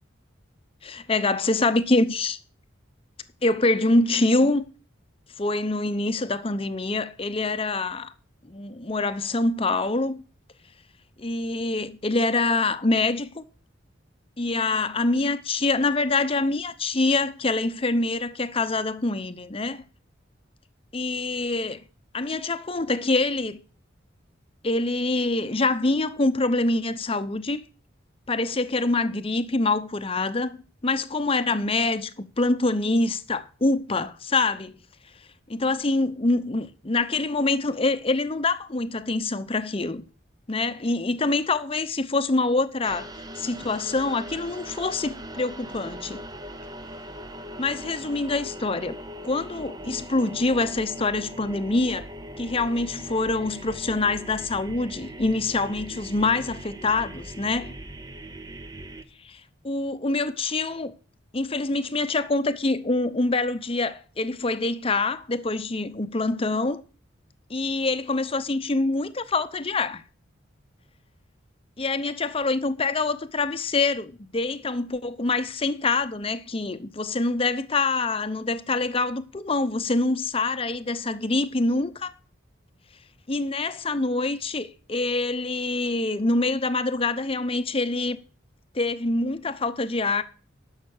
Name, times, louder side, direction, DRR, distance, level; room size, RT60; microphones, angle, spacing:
voice 1, 0.8-2.4 3.4-4.6 5.4-8.1 8.4-10.2 11.2-13.4 14.4-19.8 20.9-21.8 22.1-23.6 24.6-27.6 28.3-30.6 30.8-34.7 35.5-40.0 40.5-43.1 43.4-46.2 47.6-49.0 49.2-52.1 52.4-57.7 59.2-60.9 61.3-66.8 67.5-70.0 71.8-82.1 83.3-88.2 88.7-90.2, left 3 dB, 30° left, 0.8 m, -25 dB
sound 1, 42.8-59.0, equal, 20° right, 0.7 m, -40 dB
11.5 x 6.5 x 6.5 m
head